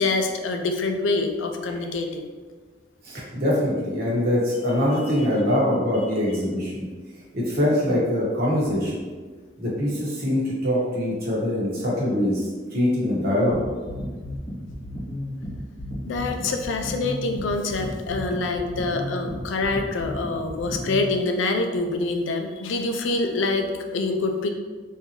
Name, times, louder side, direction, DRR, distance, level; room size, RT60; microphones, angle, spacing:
voice 1, 0.0-2.3 5.2-5.3 16.0-23.7 23.9-24.5, left 3 dB, 75° left, 5 dB, 0.4 m, -25 dB
voice 2, 3.0-6.9 7.3-9.0 9.6-12.4 12.7-13.6, left 1 dB, 55° right, -5 dB, 1.0 m, -23 dB
sound 1, 13.5-21.1, left 1 dB, 60° left, 0.9 m, -33 dB
3.7 x 2.7 x 2.9 m, 1.4 s
head